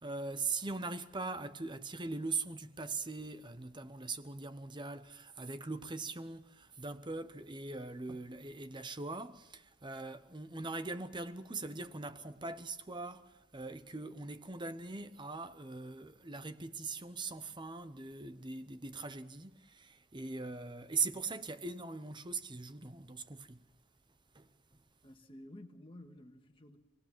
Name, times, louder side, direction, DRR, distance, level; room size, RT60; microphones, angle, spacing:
voice 1, 0.0-23.6 24.3-24.5, right 3 dB, 20° right, 0.9 m, -41 dB
voice 2, 25.0-26.8, left 1 dB, 25° left, 1.8 m, -52 dB
27.5 x 19.0 x 7.5 m
head